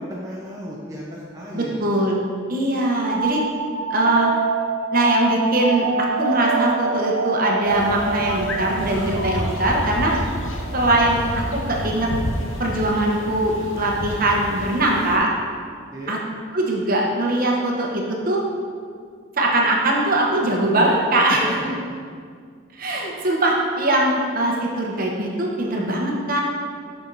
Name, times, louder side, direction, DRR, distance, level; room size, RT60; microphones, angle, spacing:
voice 1, 0.0-1.7 15.9-16.1 21.4-21.7, equal, 15° right, -5 dB, 0.7 m, -34 dB
voice 2, 1.5-2.2 2.5-3.4 3.9-4.3 4.9-5.9 6.2-10.1 10.7-11.2 11.5-12.1 12.6-15.3 16.1-16.2 16.5-18.4 19.4-21.4 22.7-26.4, right 1 dB, 45° right, -1 dB, 1.0 m, -21 dB
sound 1, 3.1-12.5, right 4 dB, 90° right, 0.6 m, -27 dB
sound 2, 7.7-15.2, left 1 dB, 75° left, 0.8 m, -30 dB
7.1 x 6.0 x 4.0 m, 2.1 s
head